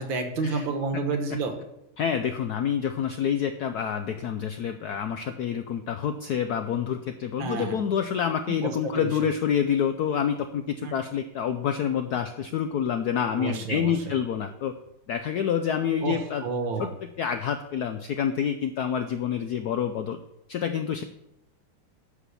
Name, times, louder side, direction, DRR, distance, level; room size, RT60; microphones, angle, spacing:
voice 1, 0.0-1.5 7.4-7.8 8.6-8.7 9.0-9.1 10.8-10.9 13.3-13.9 16.0-16.9, right 4 dB, 70° right, 5 dB, 1.9 m, -29 dB
voice 2, 2.0-14.7 15.1-16.4 16.8-16.9 17.2-20.2 20.5-21.0, left 8 dB, 90° left, 8 dB, 0.8 m, -27 dB
10.0 x 5.0 x 6.9 m, 0.85 s
omnidirectional pair, 2.3 m